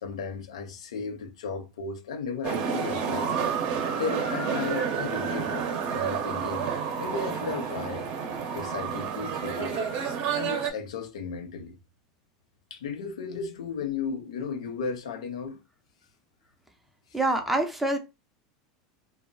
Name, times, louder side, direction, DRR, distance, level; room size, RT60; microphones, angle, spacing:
voice 1, 0.0-3.3 4.0-6.7 7.0-8.1 8.5-9.9 10.3-11.8 12.7-15.6 17.1-17.2, left 5 dB, 90° left, 0.5 m, -35 dB
sound 1, 2.4-10.7, right 6 dB, 50° right, 0.7 m, -30 dB
voice 2, 17.1-18.0, right 2 dB, 5° right, 0.5 m, -25 dB
2.2 x 2.0 x 3.7 m
supercardioid pair, 110°, 3 cm